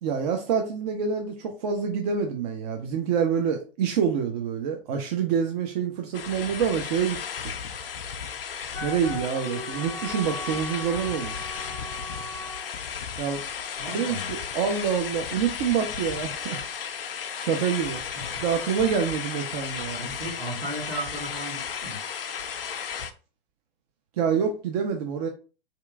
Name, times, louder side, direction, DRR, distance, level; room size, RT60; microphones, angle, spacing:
voice 1, 0.0-7.4 8.8-11.5 13.2-13.4 13.9-16.6 17.4-18.0 18.4-20.1 24.2-25.3, right 7 dB, 45° right, 0.5 m, -27 dB
sound 1, 6.1-23.1, left 7 dB, 70° left, 0.4 m, -34 dB
Wind instrument woodwind instrument, 8.7-12.7, left 1 dB, 10° left, 0.6 m, -38 dB
voice 2, 13.8-14.3 18.1-18.4 19.9-22.0, right 1 dB, 80° right, 1.8 m, -36 dB
2.8 x 2.5 x 3.3 m
figure-of-eight pair, 100°, 29 cm